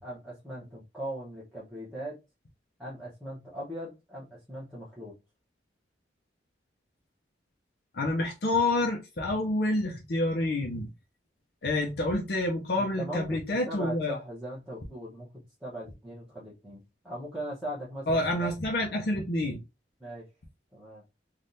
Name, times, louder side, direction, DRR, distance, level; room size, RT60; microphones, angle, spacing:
voice 1, 0.0-2.2 2.8-5.2 12.7-18.5 20.0-20.3 20.7-21.0, right 1 dB, ahead, 0.9 m, -39 dB
voice 2, 7.9-10.9 11.6-14.1 18.1-19.6, left 2 dB, 60° left, 0.6 m, -28 dB
3.4 x 2.4 x 2.6 m
head